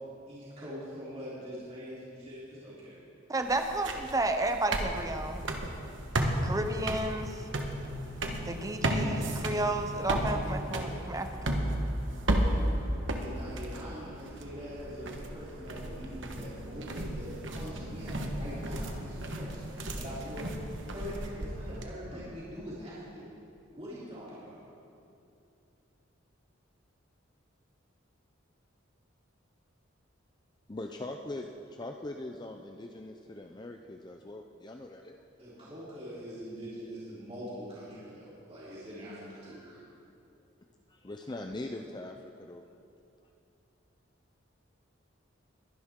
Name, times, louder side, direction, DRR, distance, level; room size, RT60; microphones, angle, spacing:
voice 1, 0.3-2.9 13.2-19.6 20.0-20.4 20.9-23.3 23.7-24.6 35.4-39.8, equal, 30° right, -10 dB, 3.8 m, -43 dB
voice 2, 3.3-5.5 6.4-7.4 8.4-11.6, right 2 dB, 15° right, 6 dB, 0.7 m, -32 dB
sound 1, 3.4-21.9, right 1 dB, 70° right, 1.2 m, -34 dB
voice 3, 30.7-31.5 31.8-35.2 40.9-42.6, left 2 dB, 20° left, 4 dB, 0.5 m, -41 dB
22.0 x 11.0 x 3.7 m, 2.6 s
head